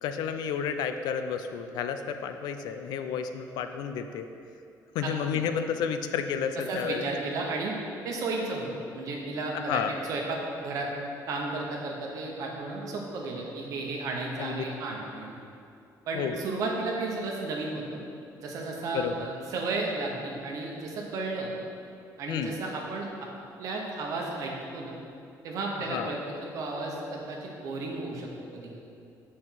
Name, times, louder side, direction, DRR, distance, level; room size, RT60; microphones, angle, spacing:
voice 1, 0.0-4.3 4.9-7.1 9.5-9.9 14.4-14.6 16.1-16.4 18.9-19.3 22.3-22.5 25.9-26.2, left 7 dB, 75° left, 8 dB, 0.4 m, -31 dB
voice 2, 5.0-5.4 6.7-7.7 8.0-8.7 8.9-9.8 10.1-10.9 11.3-15.4 16.1-18.0 18.4-21.5 22.2-23.3 23.6-25.0 25.4-26.2 26.5-28.7, right 3 dB, 55° right, -1 dB, 1.1 m, -33 dB
6.9 x 4.3 x 5.8 m, 2.5 s
cardioid pair, 180°, 7 cm